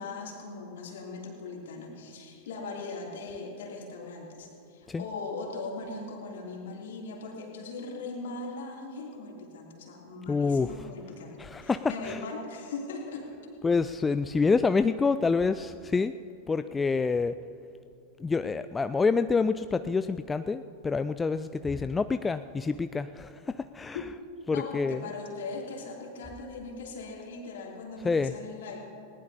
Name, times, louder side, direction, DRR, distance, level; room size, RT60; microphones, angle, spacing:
voice 1, 0.0-13.3 23.9-24.0 24.5-28.8, left 3 dB, 60° left, -1 dB, 2.8 m, -39 dB
voice 2, 10.3-10.9 11.4-12.2 13.6-16.2 16.5-17.4 18.2-24.0 24.5-25.0 28.0-28.4, left 4 dB, 15° left, 11 dB, 0.3 m, -27 dB
20.0 x 18.5 x 2.8 m, 2.6 s
figure-of-eight pair, 90°, 0 cm